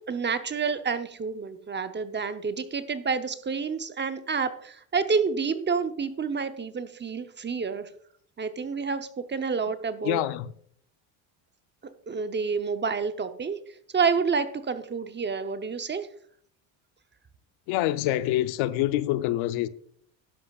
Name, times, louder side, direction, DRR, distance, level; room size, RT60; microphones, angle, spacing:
voice 1, 0.1-7.9 8.4-10.2 12.1-13.6 13.9-16.1, right 5 dB, 20° right, 0.7 m, -29 dB
voice 2, 10.0-10.5 17.7-19.7, left 14 dB, 75° left, 0.7 m, -26 dB
12.0 x 10.5 x 2.4 m
supercardioid pair, 100°, 49 cm